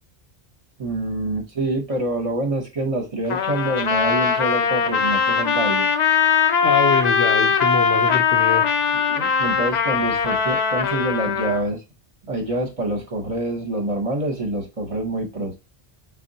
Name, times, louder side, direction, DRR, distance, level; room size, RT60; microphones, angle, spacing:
voice 1, 0.8-5.9 8.9-11.8 12.3-15.5, right 1 dB, 40° right, 0.7 m, -26 dB
Trumpet, 3.3-11.6, left 6 dB, 55° left, 0.5 m, -20 dB
voice 2, 6.6-8.7, left 5 dB, 80° left, 0.8 m, -24 dB
3.7 x 2.1 x 3.9 m
omnidirectional pair, 1.0 m